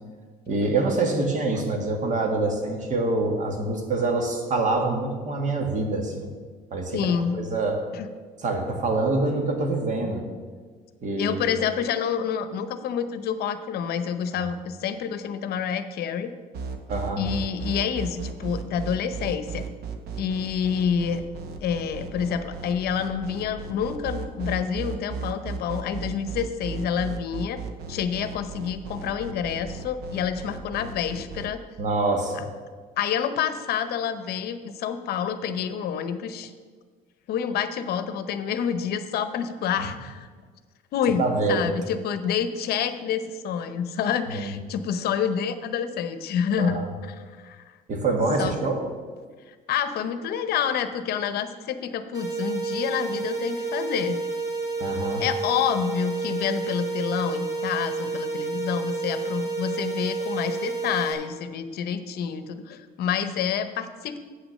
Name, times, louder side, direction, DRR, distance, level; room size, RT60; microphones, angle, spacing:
voice 1, 0.5-6.3 6.7-7.8 8.4-10.3 11.0-11.4 16.9-17.2 31.8-32.5 41.2-41.7 44.3-44.5 46.6-46.9 47.9-48.8 54.8-55.2, right 2 dB, 45° right, 3 dB, 1.6 m, -25 dB
voice 2, 6.9-7.4 7.9-8.1 11.2-16.3 17.2-19.6 20.2-21.2 21.6-27.6 27.9-31.6 33.0-36.5 37.3-40.3 40.9-47.6 48.4-48.5 49.5-54.2 55.2-64.2, left 7 dB, 70° left, 11 dB, 0.7 m, -28 dB
sound 1, 16.5-31.5, right 5 dB, 70° right, 0.9 m, -35 dB
sound 2, 52.1-61.1, right 3 dB, 20° right, 2.1 m, -30 dB
8.0 x 6.2 x 6.5 m, 1.5 s
cardioid pair, 110°, 17 cm